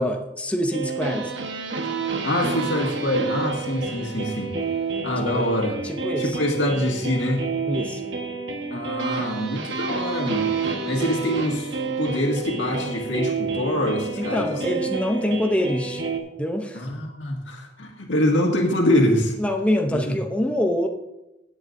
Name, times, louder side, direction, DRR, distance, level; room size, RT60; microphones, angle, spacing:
voice 1, 0.0-1.3 5.2-5.5 5.8-6.4 7.7-8.0 14.2-16.0 16.4-16.8 19.4-20.9, left 1 dB, 5° left, 3 dB, 0.6 m, -25 dB
sound 1, 0.7-16.2, right 4 dB, 70° right, 1.2 m, -29 dB
voice 2, 2.2-4.5 5.0-5.8 6.2-7.5 8.7-10.5 10.8-14.8 16.7-19.3 19.9-20.2, left 1 dB, 75° left, 1 dB, 1.9 m, -24 dB
16.0 x 8.2 x 2.6 m, 0.93 s
head